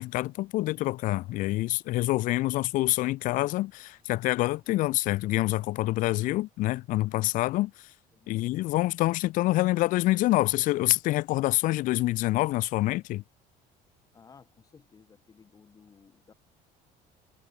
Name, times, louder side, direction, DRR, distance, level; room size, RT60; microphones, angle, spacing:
voice 1, 0.0-7.9 8.3-13.2, left 18 dB, 55° left, 0.6 m, -26 dB
voice 2, 8.1-8.5 14.1-16.3, left 6 dB, 20° left, 6.9 m, -56 dB
cardioid pair, 175°, 16 cm